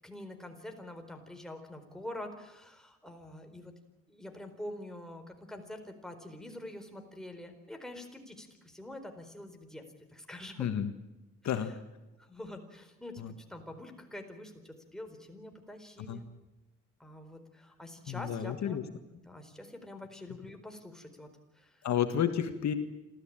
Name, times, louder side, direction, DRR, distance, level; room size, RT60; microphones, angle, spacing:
voice 1, 0.0-3.7 4.1-9.8 10.1-10.7 12.2-16.3 17.0-18.9 19.2-21.9, left 1 dB, ahead, 4 dB, 4.3 m, -46 dB
voice 2, 10.6-10.9 11.4-11.7 13.2-13.3 16.1-16.2 18.1-18.8 21.8-22.7, left 9 dB, 65° left, 8 dB, 1.7 m, -31 dB
28.0 x 14.0 x 8.9 m, 1.0 s
cardioid pair, 90°, 30 cm